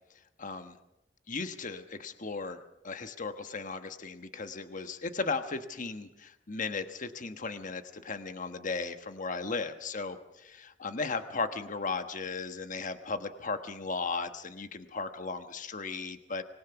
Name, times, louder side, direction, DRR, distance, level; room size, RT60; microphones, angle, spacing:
voice 1, 0.4-0.8 1.3-2.6 2.8-16.4, left 4 dB, 45° left, 9 dB, 1.2 m, -36 dB
25.5 x 20.5 x 5.9 m, 0.88 s
head